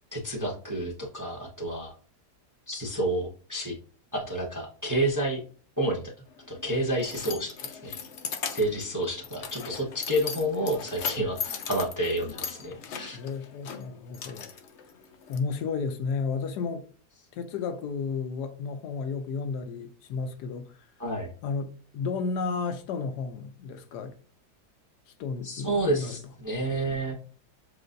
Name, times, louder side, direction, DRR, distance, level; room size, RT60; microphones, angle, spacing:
voice 1, 0.1-1.9 2.7-3.8 4.1-5.4 5.8-6.1 6.5-7.9 8.5-13.2 21.0-21.3 25.4-27.1, right 1 dB, 15° right, 0.6 m, -29 dB
Keys jangling, 6.3-15.4, left 7 dB, 60° left, 0.8 m, -38 dB
voice 2, 13.1-14.5 15.3-16.9 17.3-20.7 21.4-24.2 25.2-26.2, left 5 dB, 80° left, 1.2 m, -32 dB
7.6 x 2.6 x 2.6 m
omnidirectional pair, 1.8 m